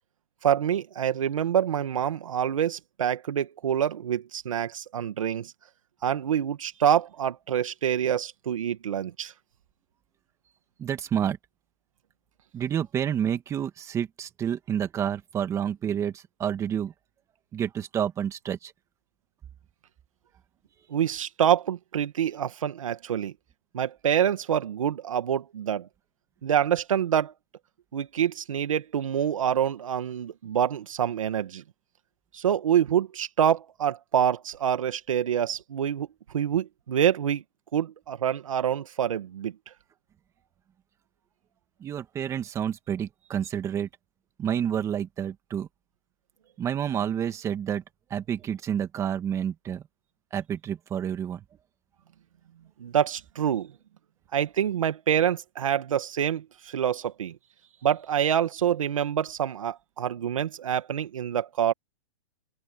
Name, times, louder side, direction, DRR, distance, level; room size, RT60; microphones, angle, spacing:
voice 1, 0.4-5.5 6.0-9.3 20.9-23.3 23.7-25.9 26.4-27.3 27.9-31.6 32.3-36.1 36.3-37.4 37.7-39.5 52.8-53.7 54.3-57.4 57.8-61.7, right 9 dB, 85° right, 2.2 m, -26 dB
voice 2, 10.8-11.4 12.5-16.9 17.5-18.7 41.8-43.9 44.4-45.7 46.6-47.8 48.1-49.8 50.3-51.4, right 9 dB, 20° right, 2.5 m, -29 dB
open air
hypercardioid pair, 155°, 17 cm